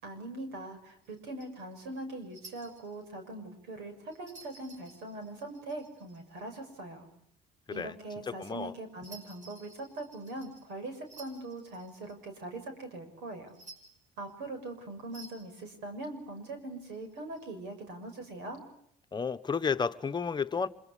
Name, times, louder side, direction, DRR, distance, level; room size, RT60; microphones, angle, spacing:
voice 1, 0.0-7.1 7.7-13.5 14.2-18.6, right 2 dB, 90° right, 6.6 m, -42 dB
sound 1, 1.0-3.0 4.1-6.4 9.0-12.1 13.5-14.3 15.1-15.7 16.9-17.5, right 3 dB, 45° right, 7.6 m, -54 dB
voice 2, 8.4-8.7 19.1-20.7, left 5 dB, 25° left, 1.1 m, -31 dB
26.0 x 24.0 x 8.3 m
cardioid pair, 110°, 17 cm